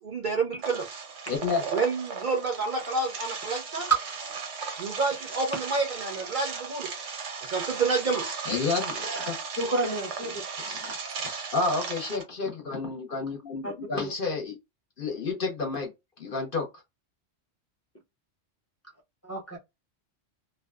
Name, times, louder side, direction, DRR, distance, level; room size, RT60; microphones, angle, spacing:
voice 1, 0.1-0.9 1.7-3.9 4.8-6.9 7.4-8.2, right 4 dB, 50° right, 0.7 m, -28 dB
sound 1, 0.6-12.2, right 5 dB, 90° right, 1.1 m, -36 dB
voice 2, 1.3-1.6 8.5-9.3 11.2-14.5 15.0-15.9 16.2-16.7, left 4 dB, 50° left, 0.9 m, -30 dB
voice 3, 9.6-10.4 13.6-14.1 19.2-19.6, right 1 dB, 15° left, 0.6 m, -32 dB
2.6 x 2.2 x 2.2 m
omnidirectional pair, 1.2 m